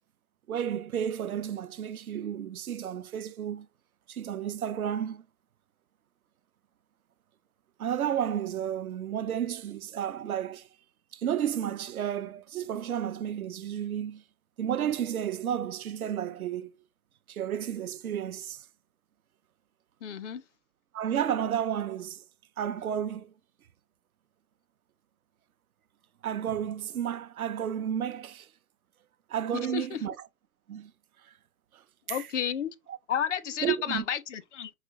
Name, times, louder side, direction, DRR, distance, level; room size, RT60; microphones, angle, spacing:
voice 1, 0.5-3.7 4.1-5.2 7.8-10.7 11.1-14.2 14.6-16.7 17.3-18.6 20.9-22.2 22.6-23.3 26.2-28.5 29.3-30.2 30.7-30.9 32.1-32.3 32.9-33.0 33.6-34.1, right 9 dB, 75° right, 0.6 m, -32 dB
voice 2, 20.0-20.4 29.5-30.0 32.1-32.7 33.1-34.7, left 9 dB, 55° left, 0.6 m, -32 dB
4.9 x 2.9 x 2.9 m
figure-of-eight pair, 125°, 44 cm